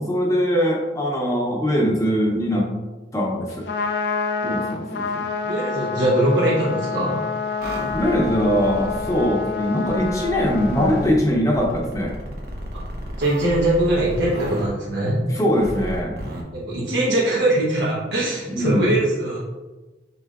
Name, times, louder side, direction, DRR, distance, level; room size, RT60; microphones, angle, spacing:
voice 1, 0.0-2.7 3.1-3.6 4.4-5.3 7.9-12.1 15.3-16.2 18.5-18.8, equal, 15° left, -1 dB, 0.8 m, -21 dB
Trumpet, 3.5-11.1, left 5 dB, 60° left, 0.4 m, -28 dB
voice 2, 5.4-7.2 12.7-12.8 13.2-15.2 16.5-19.4, right 1 dB, 75° right, -7 dB, 1.0 m, -21 dB
sound 1, 7.6-9.3 9.9-11.2 11.5-14.7 15.6-16.4, equal, 55° right, 0.8 m, -33 dB
5.7 x 3.8 x 2.3 m, 1.2 s
head